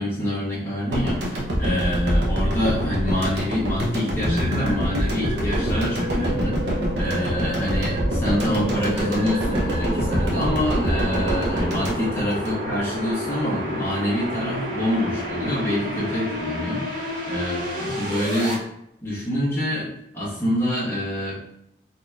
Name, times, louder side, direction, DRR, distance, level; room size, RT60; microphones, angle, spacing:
voice 1, 0.0-18.6 19.0-19.9 20.1-21.4, equal, 15° left, -9 dB, 1.3 m, -26 dB
sound 1, 0.9-13.1, equal, 65° right, 0.8 m, -25 dB
sound 2, 3.8-18.5, equal, 45° right, 1.3 m, -31 dB
sound 3, 4.3-6.3 7.0-8.0 8.7-9.8, right 3 dB, 30° right, 0.3 m, -39 dB
3.9 x 2.8 x 2.4 m, 0.76 s
head